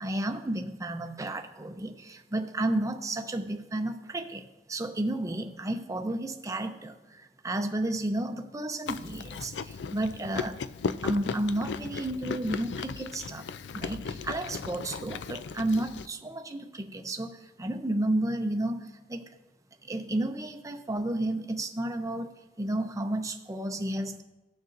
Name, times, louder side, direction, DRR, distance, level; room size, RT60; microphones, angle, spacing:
voice 1, 0.0-10.6 11.0-13.4 13.7-18.8 19.1-19.3 19.8-24.2, right 1 dB, 20° right, 6 dB, 0.6 m, -32 dB
Chewing mastication, 8.9-16.1, left 5 dB, 80° left, 0.4 m, -36 dB
18.0 x 6.5 x 2.6 m, 1.1 s
head